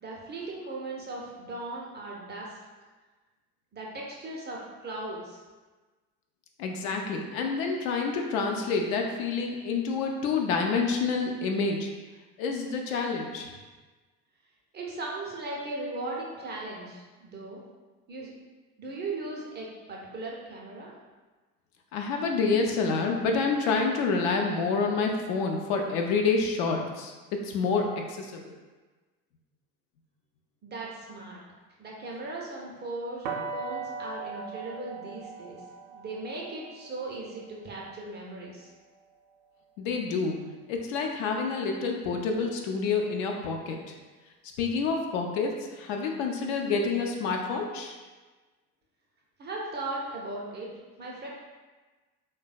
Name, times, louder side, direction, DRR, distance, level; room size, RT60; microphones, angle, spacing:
voice 1, 0.0-2.6 3.7-5.4 14.7-17.6 18.1-18.3 18.8-20.9 30.6-31.4 31.8-33.3 33.5-38.7 49.4-50.7 51.0-51.3, right 2 dB, 25° right, -3 dB, 0.5 m, -38 dB
voice 2, 6.6-11.9 12.4-13.5 21.9-28.5 39.8-40.4 40.7-43.8 44.6-47.9, left 4 dB, 60° left, 2 dB, 0.5 m, -28 dB
sound 1, 33.2-39.1, right 5 dB, 70° right, 0.6 m, -40 dB
3.2 x 2.1 x 2.4 m, 1.3 s
figure-of-eight pair, 60°, 45 cm